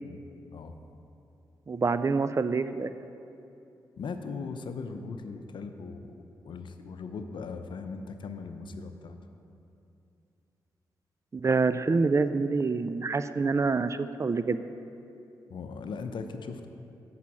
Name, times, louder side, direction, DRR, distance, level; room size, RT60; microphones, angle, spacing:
voice 1, 1.7-2.9 11.3-14.6, right 4 dB, 35° right, 12 dB, 0.4 m, -26 dB
voice 2, 4.0-6.1 6.4-9.2 15.5-16.7, left 4 dB, 65° left, 7 dB, 0.7 m, -39 dB
8.2 x 5.7 x 7.4 m, 2.7 s
supercardioid pair, 45°, 9 cm